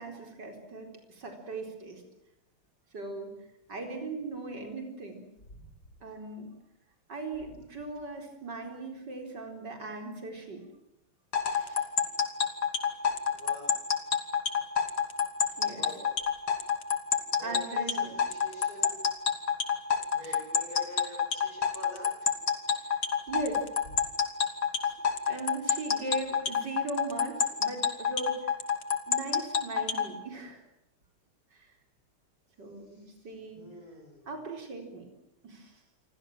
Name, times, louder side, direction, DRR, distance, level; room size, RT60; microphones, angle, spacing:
voice 1, 0.0-2.0 2.9-3.3 3.7-5.2 6.0-6.5 7.1-10.7 11.4-11.9 15.6-16.0 17.4-18.1 20.2-20.4 22.9-23.0 23.3-23.6 24.8-24.9 25.3-28.5 29.1-30.6 31.5-31.7 32.6-33.7 34.3-35.1 35.4-35.8, right 3 dB, 55° right, 4 dB, 5.0 m, -39 dB
sound 1, 11.3-30.1, left 7 dB, 85° left, 3.5 m, -27 dB
voice 2, 13.3-13.7 15.7-16.0 17.4-19.0 20.1-22.3 32.9-33.3 33.5-34.3, equal, 45° left, 1 dB, 7.4 m, -46 dB
29.0 x 24.0 x 7.5 m, 0.85 s
omnidirectional pair, 2.3 m